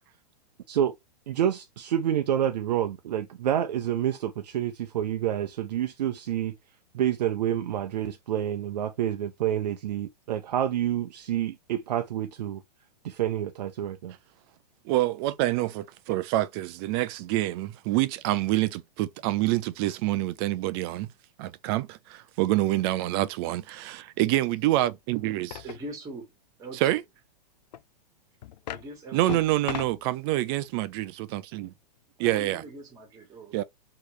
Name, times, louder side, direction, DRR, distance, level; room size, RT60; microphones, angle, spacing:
voice 1, 1.3-6.5 6.9-12.6 13.0-14.1, right 10 dB, 75° right, 0.7 m, -28 dB
voice 2, 14.9-21.1 21.4-25.6 26.8-27.0 29.1-31.7 32.2-32.6 33.5-33.6, right 16 dB, 35° right, 0.5 m, -27 dB
sound 1, 24.8-24.9 25.5-25.8 27.7-27.8 28.4-28.9 29.3-30.0, left 12 dB, 85° left, 0.4 m, -36 dB
voice 3, 25.6-26.3 26.6-27.0 28.7-29.4 32.2-33.6, right 2 dB, 15° right, 1.9 m, -41 dB
4.5 x 3.1 x 3.2 m
hypercardioid pair, 140°, 21 cm